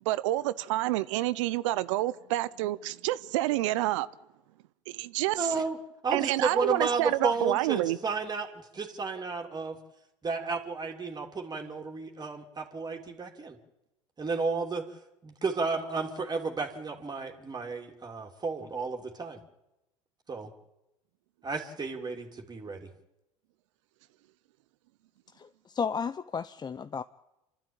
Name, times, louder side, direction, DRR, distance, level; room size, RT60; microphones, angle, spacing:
voice 1, 0.1-4.1 4.9-5.5 6.1-8.0, right 16 dB, 75° right, 0.7 m, -28 dB
voice 2, 5.4-5.8 6.0-8.5 8.7-9.8 10.2-13.6 14.2-14.8 15.2-19.4 20.3-20.5 21.4-22.9, right 4 dB, 25° right, 2.9 m, -32 dB
voice 3, 25.4-27.0, left 6 dB, 25° left, 0.7 m, -33 dB
28.5 x 12.5 x 8.9 m
hypercardioid pair, 75°, 16 cm